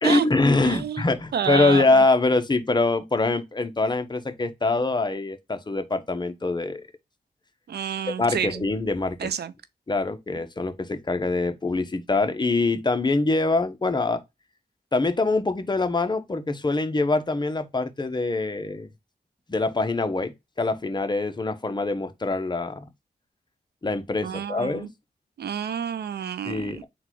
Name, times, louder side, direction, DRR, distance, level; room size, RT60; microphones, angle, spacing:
voice 1, 0.0-6.8 8.2-9.3 9.9-14.2 14.9-18.9 19.5-22.9 23.8-24.9 26.4-26.8, left 3 dB, 25° left, 0.7 m, -24 dB
voice 2, 0.6-1.1 1.3-2.0 7.7-8.7 9.2-9.5 24.2-24.9 25.4-26.8, right 8 dB, 80° right, 0.5 m, -29 dB
3.9 x 2.3 x 4.4 m
cardioid pair, 55°, 17 cm